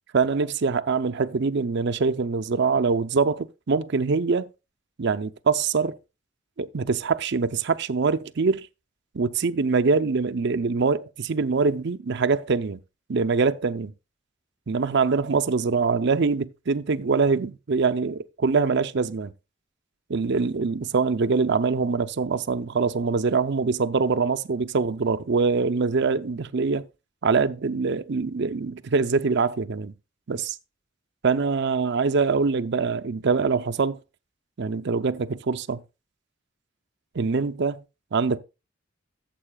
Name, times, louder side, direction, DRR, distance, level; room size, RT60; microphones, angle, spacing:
voice 1, 0.1-4.5 5.0-6.0 6.6-8.7 9.1-12.8 13.1-13.9 14.7-19.3 20.1-26.9 27.2-29.9 30.3-30.6 31.2-34.0 34.6-35.8 37.1-37.8 38.1-38.4, right 4 dB, 60° right, 0.6 m, -24 dB
13.5 x 7.5 x 2.3 m
head